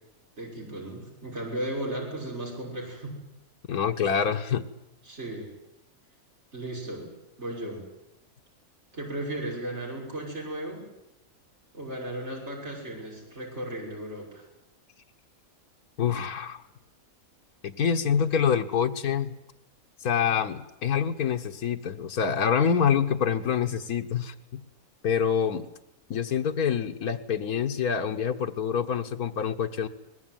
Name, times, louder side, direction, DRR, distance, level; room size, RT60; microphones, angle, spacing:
voice 1, 0.4-3.2 5.0-5.5 6.5-7.1 7.4-7.9 8.9-10.9 11.7-14.5, right 1 dB, 50° right, -2 dB, 6.5 m, -35 dB
voice 2, 3.7-4.6 16.0-16.6 17.6-19.3 20.0-24.6 25.0-25.7 26.1-29.9, left 7 dB, 90° left, 4 dB, 1.7 m, -26 dB
22.5 x 21.0 x 9.2 m, 0.90 s
omnidirectional pair, 1.5 m